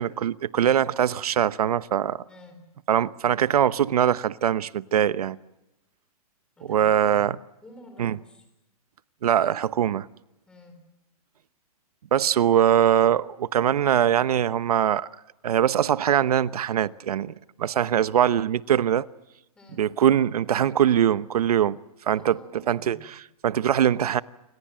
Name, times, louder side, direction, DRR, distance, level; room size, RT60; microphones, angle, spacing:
voice 1, 0.0-2.2 2.9-5.4 6.7-7.4 8.0-8.2 9.2-10.1 12.1-15.1 15.4-17.3 17.6-19.1 19.8-21.8 22.1-22.4 22.7-24.2, right 10 dB, 85° right, 0.9 m, -22 dB
voice 2, 2.3-2.6 6.6-7.3 7.6-8.5 10.5-10.8 19.5-19.8 22.1-23.1, left 1 dB, 5° left, 3.8 m, -50 dB
28.5 x 25.5 x 7.6 m
hypercardioid pair, 180°, 19 cm